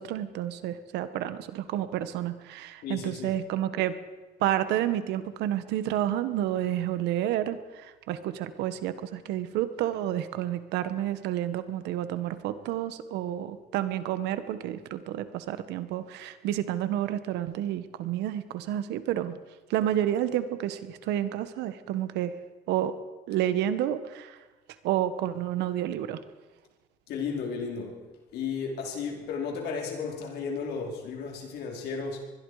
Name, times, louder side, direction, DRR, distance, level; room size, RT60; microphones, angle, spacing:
voice 1, 0.0-4.0 4.4-19.4 19.7-22.4 22.7-22.9 23.3-24.4 24.8-26.2, right 12 dB, 85° right, 11 dB, 1.5 m, -30 dB
voice 2, 2.8-3.4 27.1-28.0 28.3-32.2, left 5 dB, 75° left, 1 dB, 4.6 m, -34 dB
25.0 x 21.0 x 5.0 m, 1.2 s
cardioid pair, 110°, 17 cm